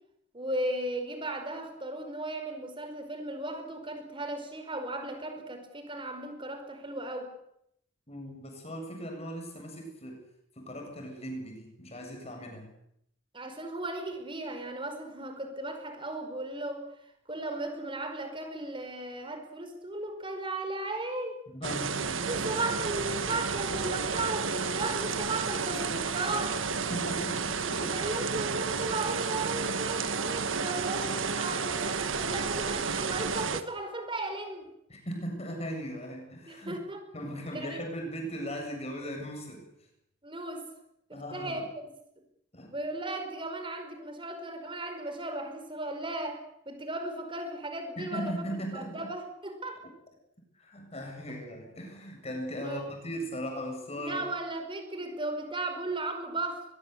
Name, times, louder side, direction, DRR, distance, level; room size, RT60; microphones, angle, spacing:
voice 1, 0.3-7.3 13.3-16.8 17.3-21.4 22.2-26.6 27.6-34.7 36.5-37.0 37.5-37.8 40.2-40.6 41.1-41.6 42.7-48.3 48.7-49.8 51.3-51.4 52.6-52.8 54.0-56.6, right 2 dB, 25° right, 7 dB, 5.2 m, -36 dB
voice 2, 8.1-10.2 10.6-12.7 21.5-22.6 26.9-28.0 34.9-36.8 37.1-39.7 41.1-41.6 42.5-42.8 48.0-49.1 50.5-54.2, equal, 35° left, 3 dB, 7.7 m, -38 dB
sound 1, 21.6-33.6, right 5 dB, 85° right, 1.6 m, -31 dB
22.0 x 22.0 x 8.2 m, 0.75 s
head